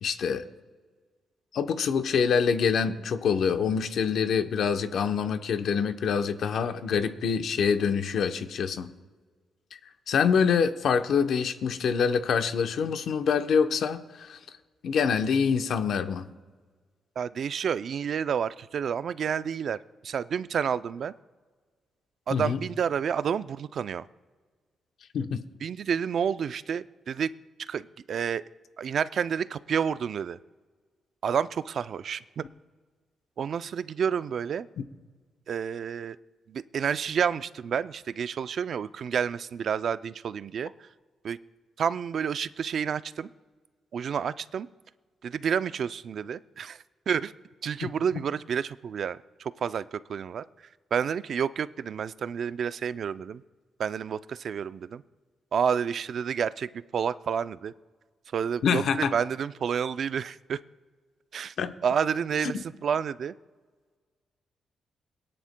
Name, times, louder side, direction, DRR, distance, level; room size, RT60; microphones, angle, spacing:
voice 1, 0.0-0.5 1.5-8.9 10.1-14.4 14.8-16.3 22.3-22.6 25.1-25.4 47.8-47.9 58.6-59.1 61.6-61.7, left 6 dB, 70° left, 8 dB, 0.8 m, -25 dB
voice 2, 17.2-21.1 22.3-24.1 25.6-27.3 27.7-28.4 28.8-30.4 31.2-32.4 33.4-34.7 35.5-36.2 36.5-40.9 41.2-41.4 41.8-43.3 43.9-44.7 45.2-47.3 47.6-50.4 50.9-53.4 53.8-55.0 55.5-57.7 58.3-60.6 61.3-61.5 61.8-63.3, right 7 dB, 55° right, 14 dB, 0.3 m, -29 dB
22.0 x 9.9 x 2.2 m, 1.5 s
cardioid pair, 130°, 0 cm